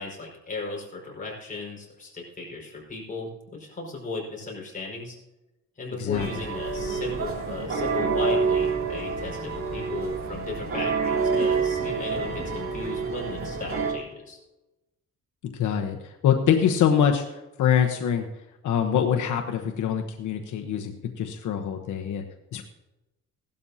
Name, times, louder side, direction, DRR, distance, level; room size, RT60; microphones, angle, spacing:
voice 1, 0.0-5.2 5.8-14.4, left 3 dB, 25° left, -2 dB, 4.9 m, -36 dB
sound 1, 6.1-13.9, right 4 dB, 45° right, 3.0 m, -27 dB
voice 2, 15.5-17.2 17.6-18.3 18.6-22.2 22.5-22.6, left 8 dB, 80° left, 4 dB, 1.1 m, -24 dB
16.5 x 12.0 x 2.8 m, 1.0 s
cardioid pair, 135°, 30 cm